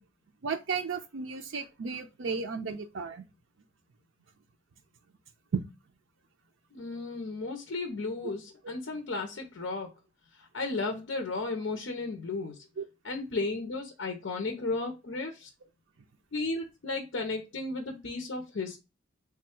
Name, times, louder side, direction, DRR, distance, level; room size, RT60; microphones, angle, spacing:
voice 1, 0.4-3.2 5.5-5.6 12.8-12.9, right 5 dB, 80° right, 0.5 m, -33 dB
voice 2, 6.7-9.9 10.4-12.6 13.0-15.5 16.3-18.8, left 3 dB, 70° left, 0.6 m, -34 dB
3.5 x 2.2 x 4.3 m
head